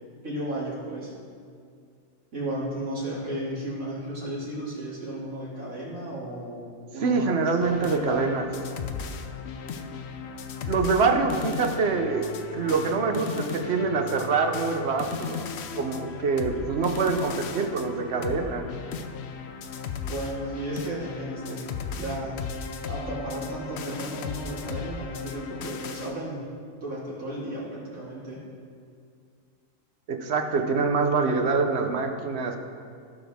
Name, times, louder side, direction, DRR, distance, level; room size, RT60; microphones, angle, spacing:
voice 1, 0.2-1.1 2.3-6.6 6.9-7.3 7.9-8.4 20.1-21.7 22.0-22.5 22.8-26.5 26.8-28.4, right 1 dB, 85° right, -7 dB, 3.1 m, -34 dB
voice 2, 7.0-8.4 10.6-12.3 12.5-15.5 15.8-18.7 30.1-32.6, right 4 dB, 55° right, 5 dB, 1.0 m, -25 dB
sound 1, 7.6-26.1, left 6 dB, 60° left, 0.8 m, -36 dB
16.5 x 5.9 x 3.6 m, 2.3 s
omnidirectional pair, 1.4 m